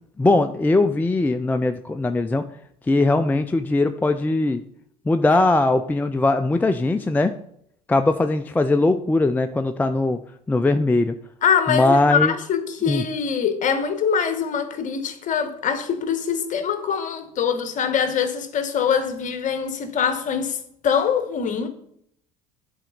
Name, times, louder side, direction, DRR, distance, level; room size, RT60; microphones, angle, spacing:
voice 1, 0.2-2.4 2.9-4.6 5.1-7.3 7.9-10.2 10.5-11.1 11.7-12.3 12.9-13.0, left 2 dB, 10° left, 0.4 m, -20 dB
voice 2, 11.4-21.7, left 7 dB, 40° left, 1.2 m, -23 dB
10.0 x 4.3 x 4.0 m
hypercardioid pair, 65°, 19 cm